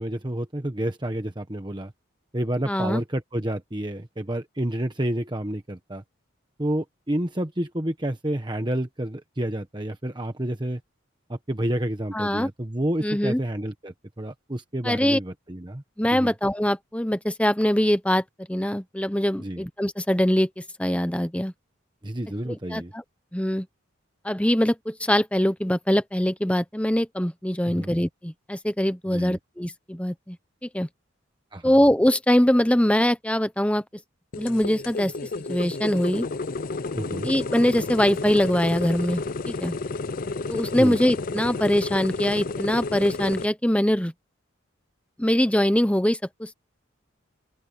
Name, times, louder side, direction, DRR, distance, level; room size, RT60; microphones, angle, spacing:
voice 1, 0.0-1.9 2.3-6.0 6.6-10.8 11.3-15.8 16.1-16.3 19.4-19.6 22.0-22.9 27.7-27.9 29.1-29.4 31.5-31.8 37.0-37.3 40.8-41.0, right 1 dB, 20° right, 1.2 m, -29 dB
voice 2, 2.7-3.0 12.1-12.5 13.0-13.4 14.8-15.2 16.0-18.2 18.5-20.5 20.8-21.5 22.5-23.0 23.3-23.7 24.2-30.4 30.6-30.9 31.6-33.8 34.4-35.1 35.5-36.3 37.2-39.7 40.5-44.1 45.2-46.5, equal, 5° left, 0.9 m, -23 dB
sound 1, 34.3-43.5, left 3 dB, 45° left, 0.5 m, -31 dB
open air
head